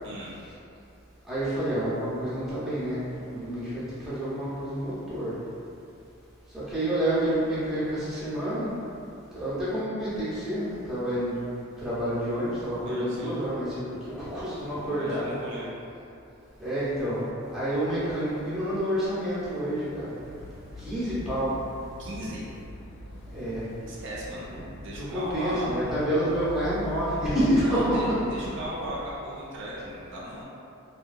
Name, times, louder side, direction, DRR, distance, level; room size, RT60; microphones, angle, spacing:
voice 1, 1.3-5.3 6.5-8.7 9.3-11.4 11.8-15.2 16.6-17.2 17.5-20.1 20.8-21.5 23.3-23.7 24.9-28.0, right 1 dB, ahead, -12 dB, 0.7 m, -28 dB
voice 2, 12.9-13.4 14.8-15.7 20.6-20.9 22.0-22.4 23.8-25.8 27.6-30.4, right 1 dB, 60° right, -5 dB, 0.4 m, -37 dB
sound 1, 20.2-29.1, left 1 dB, 65° left, 0.3 m, -43 dB
2.8 x 2.2 x 2.5 m, 2.7 s
head